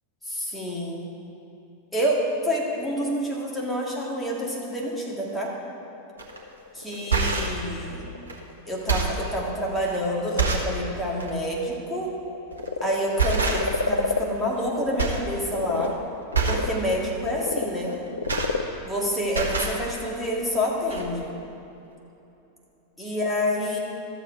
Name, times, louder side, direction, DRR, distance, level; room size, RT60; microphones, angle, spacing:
voice 1, 0.2-1.1 1.9-5.5 6.7-8.1 8.7-12.1 12.8-16.0 16.5-18.0 18.9-21.3 23.0-23.8, equal, 5° left, -4 dB, 2.1 m, -28 dB
Frog, 2.3-15.1 15.4-20.1, left 4 dB, 75° left, 0.5 m, -34 dB
sound 1, 6.2-6.4 6.9-7.6 8.3-8.4 8.7-9.3 9.9-10.0 10.4-10.8 11.2-11.3 12.5-12.7 13.2-13.9 14.2-14.7 15.0-15.3 15.6-15.9 16.3-16.7 17.9-19.0 19.3-19.8 20.6-20.7 20.9-21.0, right 4 dB, 75° right, 1.2 m, -26 dB
13.0 x 7.5 x 4.6 m, 2.9 s
figure-of-eight pair, 90°, 0 cm